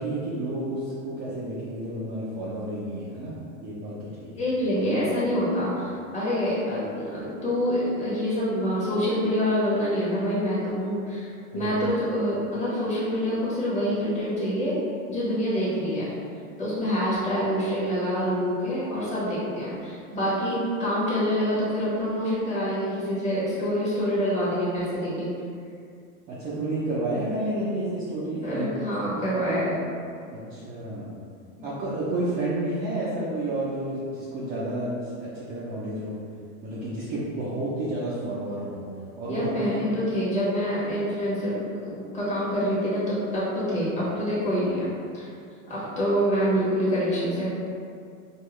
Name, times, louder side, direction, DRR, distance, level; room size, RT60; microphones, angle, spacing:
voice 1, 0.0-3.3 3.6-4.5 11.5-11.8 26.3-28.7 29.0-29.1 30.3-31.1 31.6-36.3 36.6-38.9 39.2-39.8, right 1 dB, 20° right, -8 dB, 0.4 m, -31 dB
voice 2, 4.4-14.8 15.1-16.2 16.6-25.3 28.4-29.8 39.3-41.5 41.8-45.3 45.7-47.5, equal, 15° left, -9 dB, 1.1 m, -26 dB
4.5 x 2.3 x 3.1 m, 2.3 s
supercardioid pair, 140°, 41 cm